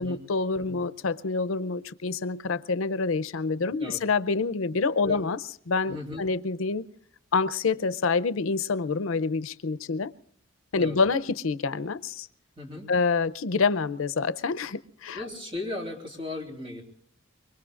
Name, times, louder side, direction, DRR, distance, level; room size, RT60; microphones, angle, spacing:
voice 1, 0.0-5.4 5.7-6.8 7.3-10.1 10.7-12.3 12.9-15.2, left 4 dB, 85° left, 15 dB, 0.6 m, -27 dB
voice 2, 5.9-6.3 10.8-11.0 12.6-12.9 15.1-16.8, left 2 dB, 25° right, 0 dB, 3.4 m, -36 dB
24.5 x 22.5 x 2.5 m, 0.66 s
head